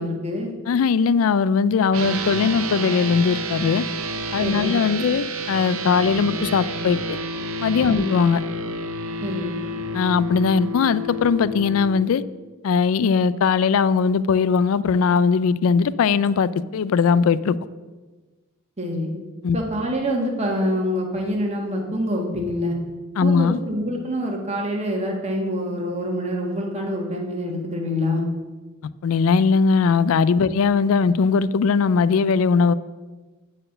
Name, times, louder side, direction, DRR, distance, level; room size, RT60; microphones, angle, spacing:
voice 1, 0.0-0.5 4.4-4.8 7.9-8.1 9.2-9.5 18.8-19.1 19.5-22.8 23.2-28.2 30.4-30.5, equal, 30° right, 1 dB, 1.5 m, -26 dB
voice 2, 0.7-3.8 4.3-7.2 7.6-8.4 9.9-12.2 12.6-17.6 19.4-19.6 23.2-23.6 29.0-32.7, left 5 dB, 70° left, 17 dB, 0.3 m, -19 dB
sound 1, 1.9-11.9, right 1 dB, 70° right, 0.7 m, -29 dB
8.8 x 4.3 x 6.5 m, 1.3 s
head